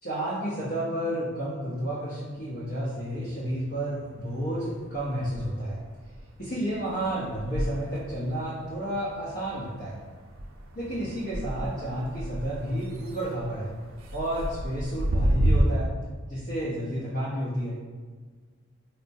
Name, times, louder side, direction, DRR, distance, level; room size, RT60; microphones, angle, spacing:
voice 1, 0.0-5.8 6.4-10.0 10.7-13.7 14.1-15.9 16.3-17.8, right 1 dB, 50° left, -8 dB, 0.7 m, -31 dB
sound 1, 2.4-3.6 3.9-15.6, right 1 dB, 70° right, 0.5 m, -32 dB
4.4 x 2.1 x 2.6 m, 1.5 s
head